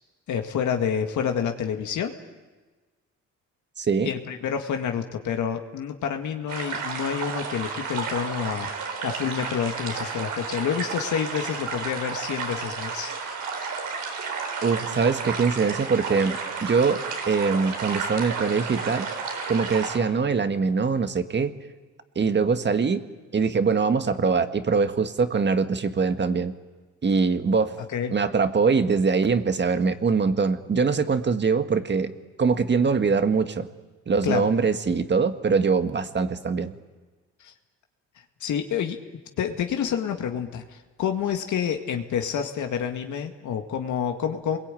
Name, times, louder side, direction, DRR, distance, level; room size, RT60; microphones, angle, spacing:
voice 1, 0.3-2.1 4.0-8.7 9.0-13.1 27.9-28.1 34.2-34.5 37.4-37.5 38.4-39.0 39.4-44.6, left 8 dB, 75° left, 5 dB, 2.1 m, -28 dB
voice 2, 3.8-4.1 14.6-19.1 19.5-21.5 22.2-23.0 23.3-26.5 27.0-27.8 28.1-32.1 32.4-33.7 34.1-36.7, right 5 dB, 35° right, 9 dB, 1.7 m, -23 dB
sound 1, 6.5-20.0, right 5 dB, 80° right, 4.3 m, -32 dB
29.0 x 22.0 x 9.2 m, 1.3 s
cardioid pair, 90°, 30 cm